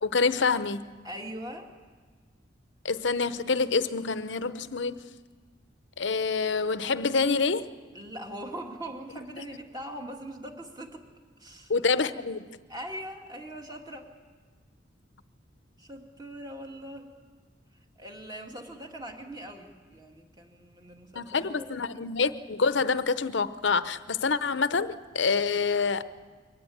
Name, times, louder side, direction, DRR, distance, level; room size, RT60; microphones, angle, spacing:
voice 1, 0.0-1.0 2.8-5.0 6.0-7.7 11.7-12.5 21.2-26.0, left 4 dB, 65° left, 0.8 m, -27 dB
voice 2, 1.0-1.7 7.9-11.0 11.4-11.7 12.7-14.1 15.8-17.1 18.0-21.7, right 1 dB, 20° right, 2.3 m, -41 dB
23.5 x 19.0 x 8.6 m
head